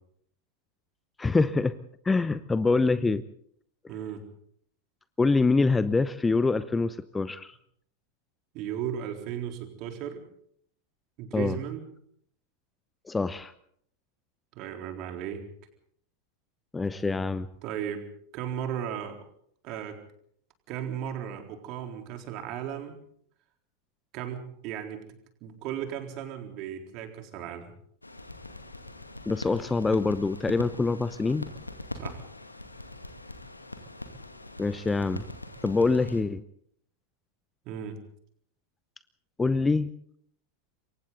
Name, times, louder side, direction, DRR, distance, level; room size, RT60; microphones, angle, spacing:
voice 1, 1.2-1.7 2.0-3.2 5.2-7.6 11.3-11.6 13.1-13.5 16.7-17.5 29.3-31.5 34.6-35.2 35.6-36.4 39.4-39.9, left 3 dB, 10° left, 15 dB, 0.8 m, -25 dB
voice 2, 3.9-4.2 8.5-10.2 11.2-11.8 14.6-15.4 17.6-18.0 18.3-19.2 19.6-20.0 20.7-23.0 24.1-25.0 25.4-27.7 32.0-32.2 37.7-38.0, right 9 dB, 40° right, 5 dB, 3.9 m, -35 dB
sound 1, 28.0-36.2, left 2 dB, 85° left, 2.3 m, -42 dB
27.5 x 23.5 x 4.0 m, 0.65 s
figure-of-eight pair, 90°, 0 cm